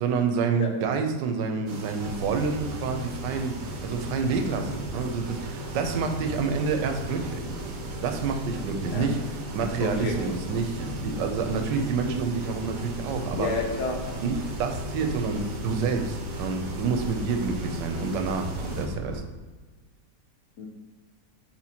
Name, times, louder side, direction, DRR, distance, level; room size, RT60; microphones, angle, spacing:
voice 1, 0.0-7.5 8.0-9.2 9.5-13.5 14.2-19.2, right 5 dB, 85° right, 5 dB, 1.2 m, -28 dB
sound 1, 1.7-18.9, right 2 dB, 60° right, 0.9 m, -40 dB
sound 2, 2.0-19.2, left 1 dB, 40° left, 1.0 m, -37 dB
voice 2, 9.8-10.1 13.4-13.9 20.6-20.7, left 4 dB, 70° left, 2 dB, 1.3 m, -29 dB
4.4 x 4.3 x 2.8 m, 1.3 s
omnidirectional pair, 1.9 m